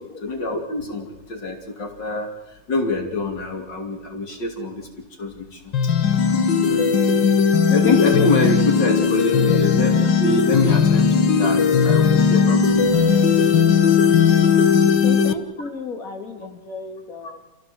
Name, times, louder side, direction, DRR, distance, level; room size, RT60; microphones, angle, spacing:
voice 1, 0.2-5.7 6.1-6.2 6.7-6.9 7.7-13.6, left 2 dB, 75° left, 4 dB, 3.5 m, -25 dB
sound 1, 5.7-15.3, left 6 dB, 90° left, 2.0 m, -17 dB
voice 2, 6.5-7.0 9.5-9.6 15.0-17.4, left 3 dB, 50° left, 3 dB, 3.1 m, -34 dB
28.0 x 17.0 x 7.8 m, 1.0 s
omnidirectional pair, 2.0 m